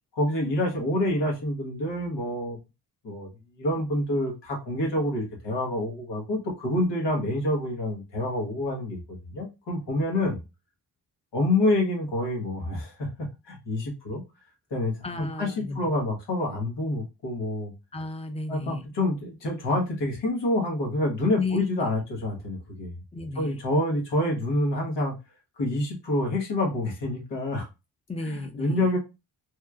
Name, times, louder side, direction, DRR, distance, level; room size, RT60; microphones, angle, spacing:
voice 1, 0.2-2.6 3.0-3.3 3.6-9.0 9.3-10.4 11.3-14.2 14.7-17.7 18.5-23.0 23.4-25.1 25.6-27.7 28.6-29.0, left 1 dB, 80° left, 1.3 m, -27 dB
voice 2, 15.0-15.8 17.9-18.9 21.4-21.6 23.1-23.6 28.1-28.9, left 3 dB, 15° left, 0.4 m, -33 dB
3.1 x 2.8 x 2.4 m
wide cardioid pair, 115°, 42 cm